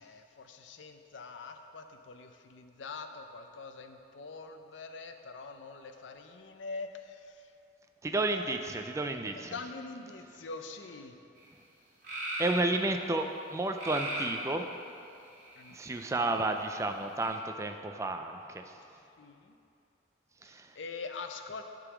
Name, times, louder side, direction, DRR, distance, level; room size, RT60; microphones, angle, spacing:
voice 1, 0.0-7.4 8.3-8.6 9.4-11.2 15.6-16.4 19.2-19.5 20.8-21.6, left 4 dB, 75° left, 6 dB, 0.5 m, -44 dB
voice 2, 8.0-9.5 12.4-14.7 15.7-18.7 20.4-20.7, right 2 dB, 15° right, 5 dB, 0.3 m, -32 dB
sound 1, 11.4-11.5 12.0-12.6 13.8-14.4 15.2-15.9 17.2-17.3, right 1 dB, 45° right, 2.0 m, -36 dB
9.8 x 3.8 x 6.0 m, 2.6 s
head